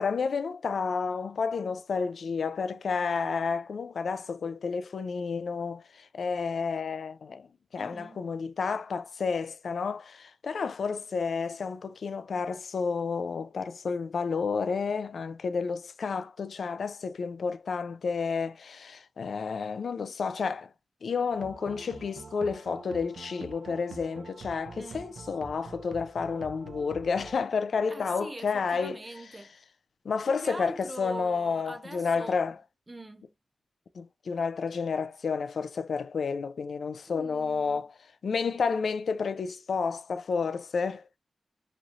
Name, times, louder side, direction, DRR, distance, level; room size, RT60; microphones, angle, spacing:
voice 1, 0.0-7.5 7.7-20.7 21.0-29.0 30.0-32.6 33.9-37.9 38.2-41.0, left 5 dB, 80° left, 0.4 m, -31 dB
voice 2, 7.8-8.2 24.8-25.1 27.9-29.5 30.3-32.4 32.9-33.3 37.1-37.8, right 1 dB, 20° right, 0.8 m, -43 dB
sound 1, 21.3-27.4, right 4 dB, 85° right, 0.7 m, -46 dB
4.1 x 3.0 x 2.4 m
wide cardioid pair, 155°, 0 cm